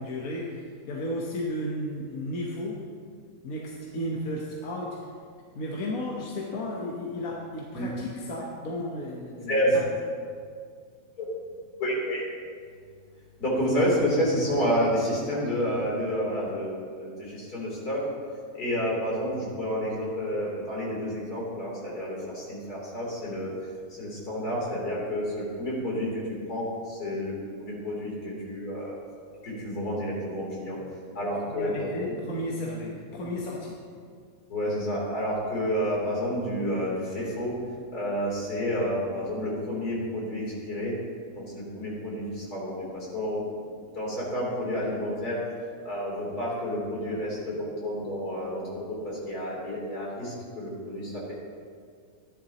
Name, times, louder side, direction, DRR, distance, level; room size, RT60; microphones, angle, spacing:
voice 1, 0.0-2.8 3.4-5.0 5.5-9.8 30.8-30.9 31.4-33.8, left 1 dB, 70° left, -3 dB, 1.5 m, -34 dB
voice 2, 11.8-12.2 13.4-16.7 17.0-18.0 18.5-23.5 24.0-26.2 26.5-28.9 29.4-30.8 31.1-32.1 34.5-37.5 37.9-40.9 41.3-43.7 43.9-45.4 45.8-48.6 48.9-51.3, equal, 85° left, -5 dB, 3.8 m, -29 dB
14.0 x 11.0 x 2.9 m, 2.1 s
omnidirectional pair, 1.6 m